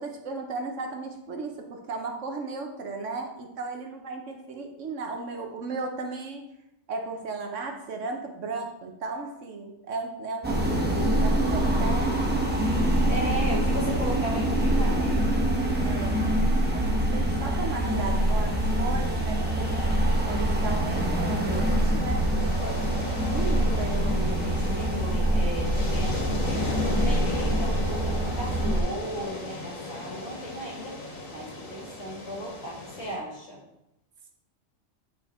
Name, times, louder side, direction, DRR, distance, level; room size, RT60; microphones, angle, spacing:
voice 1, 0.0-6.4 6.9-12.2 15.8-16.2 16.7-24.6, right 3 dB, 70° right, 3 dB, 1.3 m, -35 dB
sound 1, 10.4-28.8, right 1 dB, 10° right, 1.0 m, -25 dB
voice 2, 13.1-15.2 24.4-31.0 31.3-33.6, equal, 55° left, -5 dB, 2.7 m, -36 dB
sound 2, 17.8-33.1, left 2 dB, 85° left, 1.9 m, -37 dB
9.1 x 3.7 x 4.3 m, 0.88 s
omnidirectional pair, 1.3 m